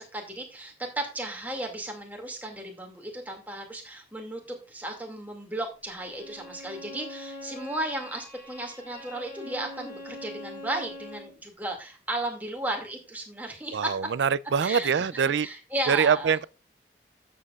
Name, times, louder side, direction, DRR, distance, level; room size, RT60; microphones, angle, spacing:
voice 1, 0.0-14.0 14.6-16.3, right 1 dB, 10° right, 2.3 m, -35 dB
Bowed string instrument, 6.0-11.4, left 2 dB, 50° left, 5.0 m, -43 dB
voice 2, 13.7-15.5 15.9-16.4, right 7 dB, 85° right, 0.4 m, -24 dB
13.0 x 7.5 x 2.4 m
head